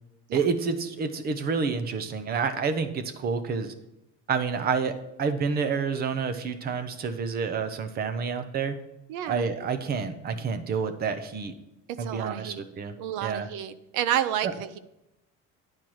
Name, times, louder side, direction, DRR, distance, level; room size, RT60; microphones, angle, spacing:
voice 1, 0.3-3.7 4.3-8.8 9.3-11.5 12.0-12.9 13.2-13.5 14.4-14.5, right 5 dB, 30° right, 10 dB, 0.7 m, -29 dB
voice 2, 9.1-9.5 12.0-12.6 13.0-14.8, right 11 dB, 75° right, 14 dB, 0.7 m, -30 dB
10.5 x 4.5 x 6.3 m, 0.91 s
cardioid pair, 170°, 32 cm